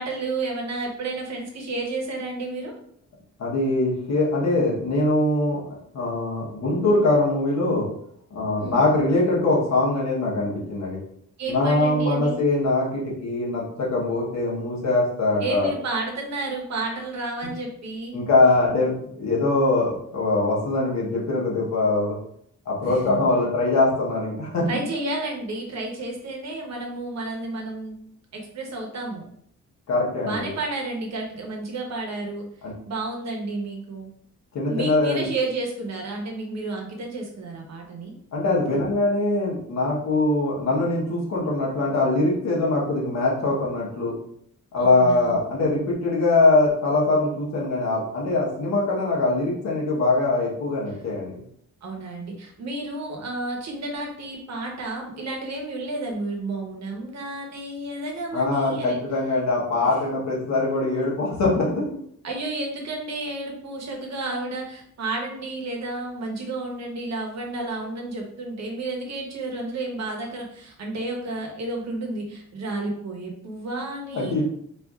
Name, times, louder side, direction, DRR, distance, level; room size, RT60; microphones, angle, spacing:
voice 1, 0.0-2.7 8.6-8.8 11.4-12.4 15.4-18.2 22.8-23.2 24.7-27.9 28.3-29.2 30.2-32.5 32.9-34.1 34.7-38.1 38.7-38.8 44.8-45.4 51.8-59.0 62.2-74.4, right 2 dB, 60° right, 1 dB, 0.9 m, -31 dB
voice 2, 3.4-5.6 5.9-7.9 8.3-11.0 11.5-15.7 18.1-22.2 22.7-24.7 29.9-30.5 32.6-32.7 34.5-35.3 38.3-44.1 44.7-51.4 58.3-61.8 74.1-74.4, left 2 dB, 65° left, -3 dB, 1.0 m, -22 dB
4.4 x 2.5 x 2.3 m, 0.68 s
wide cardioid pair, 140°, 30 cm